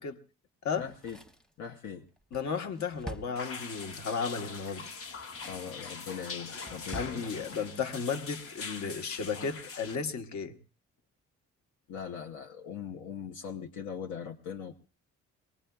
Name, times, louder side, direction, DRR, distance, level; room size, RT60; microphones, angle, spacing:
Drawer open or close, 0.7-4.0 4.9-5.8 6.2-7.2 7.5-7.6, right 1 dB, ahead, 0.9 m, -47 dB
voice 1, 0.8-1.2 1.6-2.0 5.4-7.4 11.9-14.7, left 7 dB, 85° left, 0.8 m, -40 dB
voice 2, 2.3-4.9 6.9-10.5, left 5 dB, 65° left, 1.2 m, -34 dB
sound 1, 3.4-10.0, left 4 dB, 45° left, 0.9 m, -43 dB
22.5 x 19.5 x 2.3 m
cardioid pair, 90°, 30 cm